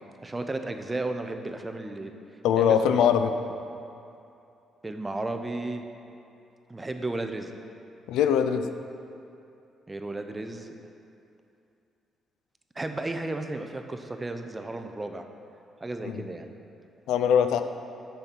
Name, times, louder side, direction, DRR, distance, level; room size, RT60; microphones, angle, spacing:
voice 1, 0.2-2.1 2.5-3.0 4.8-5.8 6.7-7.5 9.9-10.7 12.8-15.2 15.8-16.5, right 2 dB, 20° right, 6 dB, 0.6 m, -33 dB
voice 2, 2.4-3.3 8.1-8.7 16.0-16.2 17.1-17.6, left 8 dB, 90° left, 9 dB, 0.4 m, -22 dB
6.8 x 5.2 x 5.8 m, 2.7 s
cardioid pair, 90°, 0 cm